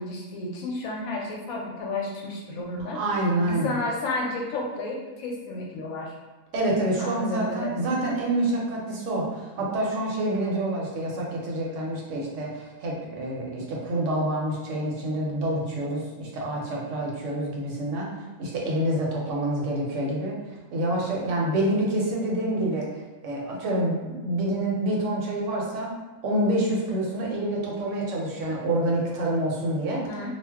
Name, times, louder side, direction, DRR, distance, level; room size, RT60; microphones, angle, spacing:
voice 1, 0.0-3.0 3.5-6.1 7.0-7.9 30.0-30.3, left 2 dB, 70° left, -1 dB, 1.0 m, -32 dB
voice 2, 2.9-3.8 6.5-18.1 18.4-20.4 20.7-22.9 23.2-25.9 26.2-30.0, right 1 dB, 65° right, -3 dB, 0.9 m, -27 dB
2.5 x 2.1 x 3.4 m, 1.2 s
omnidirectional pair, 1.6 m